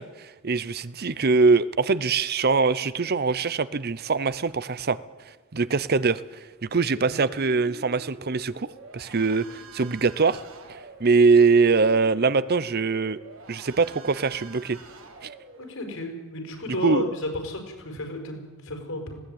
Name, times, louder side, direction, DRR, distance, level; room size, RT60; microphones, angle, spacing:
voice 1, 0.0-5.0 5.5-6.2 6.6-8.7 8.9-10.4 10.7-13.2 13.5-14.8 15.2-15.3 16.8-17.1, right 4 dB, 50° right, 17 dB, 0.7 m, -22 dB
sound 1, 6.8-16.0, right 2 dB, 75° right, 3.2 m, -46 dB
voice 2, 15.6-19.2, left 1 dB, 75° left, 3 dB, 5.5 m, -33 dB
20.0 x 17.5 x 9.2 m, 1.3 s
head